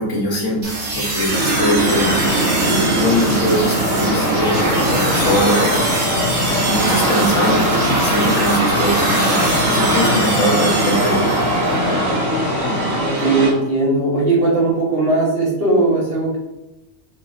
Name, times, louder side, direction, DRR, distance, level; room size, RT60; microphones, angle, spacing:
voice 1, 0.0-2.2 2.6-6.2 6.6-11.4, equal, 65° left, -3 dB, 1.5 m, -22 dB
sound 1, 0.6-11.8, right 2 dB, 60° right, 1.6 m, -24 dB
sound 2, 1.3-13.5, right 2 dB, 80° right, 1.5 m, -21 dB
sound 3, 2.0-13.0, left 3 dB, 90° left, 1.3 m, -25 dB
voice 2, 13.0-16.4, right 2 dB, 45° right, -4 dB, 1.6 m, -18 dB
3.9 x 3.7 x 3.7 m, 0.94 s
omnidirectional pair, 1.4 m